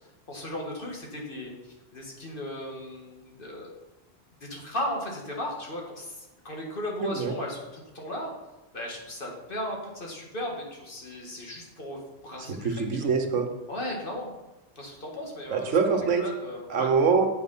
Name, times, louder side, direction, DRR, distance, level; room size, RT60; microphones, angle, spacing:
voice 1, 0.3-3.7 4.4-8.3 8.7-12.8 13.7-14.3 14.8-15.7 16.2-16.9, left 1 dB, 45° left, -1 dB, 2.0 m, -36 dB
voice 2, 7.0-7.3 12.6-13.5 15.5-16.2 16.7-17.3, right 5 dB, 85° right, 5 dB, 1.3 m, -24 dB
8.0 x 6.2 x 5.5 m, 1.0 s
omnidirectional pair, 1.2 m